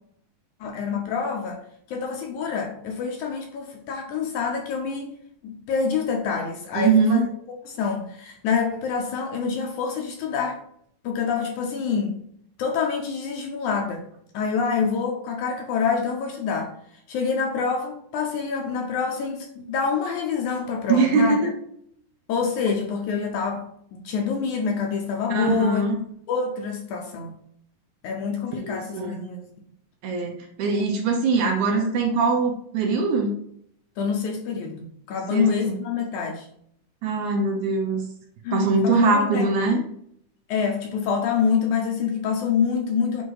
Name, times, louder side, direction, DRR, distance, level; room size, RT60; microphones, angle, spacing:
voice 1, 0.6-1.6 1.9-5.2 5.4-7.2 7.7-10.6 11.0-12.2 12.6-14.0 14.3-16.7 17.1-21.4 22.3-23.6 23.9-25.8 26.3-27.4 28.0-29.5 34.0-36.5 38.4-39.8 40.5-43.2, left 6 dB, 75° left, 2 dB, 2.0 m, -26 dB
voice 2, 6.7-7.3 20.9-21.5 25.3-26.0 28.7-29.3 30.0-33.4 35.3-35.8 37.0-38.0 38.5-39.8, right 4 dB, 70° right, 1 dB, 2.0 m, -22 dB
8.0 x 2.7 x 4.7 m, 0.68 s
omnidirectional pair, 4.0 m